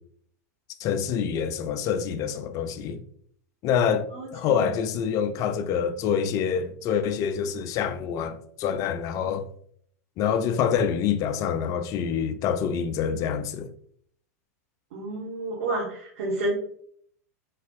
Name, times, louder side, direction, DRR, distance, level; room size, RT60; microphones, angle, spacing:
voice 1, 0.8-3.0 3.6-9.4 10.2-13.7, left 7 dB, 40° left, 0.5 m, -26 dB
voice 2, 14.9-16.5, right 2 dB, 65° right, 1.5 m, -29 dB
4.3 x 4.1 x 2.6 m
hypercardioid pair, 100°, 9 cm